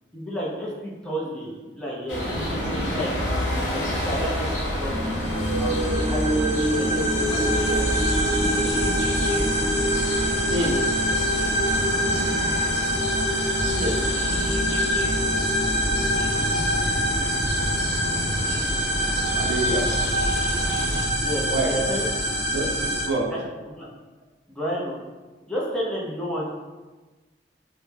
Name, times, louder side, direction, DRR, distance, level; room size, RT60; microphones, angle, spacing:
voice 1, 0.1-2.2 2.8-3.1 3.7-4.5 4.8-5.2 5.6-7.8 13.7-14.3 21.2-22.3 23.3-23.4 23.7-23.9 24.5-25.0 25.5-26.5, equal, 5° left, -6 dB, 0.4 m, -31 dB
sound 1, 2.1-21.0, equal, 90° left, 0.7 m, -30 dB
sound 2, 4.9-16.9, equal, 20° right, 0.8 m, -30 dB
sound 3, 5.0-23.1, equal, 40° left, 0.7 m, -25 dB
voice 2, 19.3-19.9 21.5-21.7 22.5-23.3, right 1 dB, 75° right, -1 dB, 0.4 m, -26 dB
2.1 x 2.0 x 3.2 m, 1.3 s
head